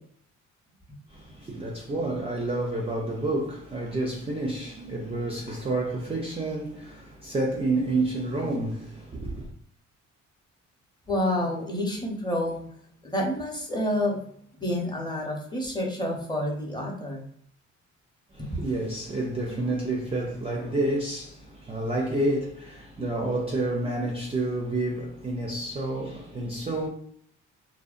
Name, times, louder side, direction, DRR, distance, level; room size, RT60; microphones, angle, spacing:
voice 1, 1.1-9.5 18.3-26.9, right 2 dB, 20° right, 0.4 m, -29 dB
voice 2, 11.1-12.6 13.0-14.2 14.6-17.2 18.4-18.6, left 1 dB, 15° left, 0.7 m, -28 dB
2.6 x 2.1 x 2.4 m
cardioid pair, 90°, 30 cm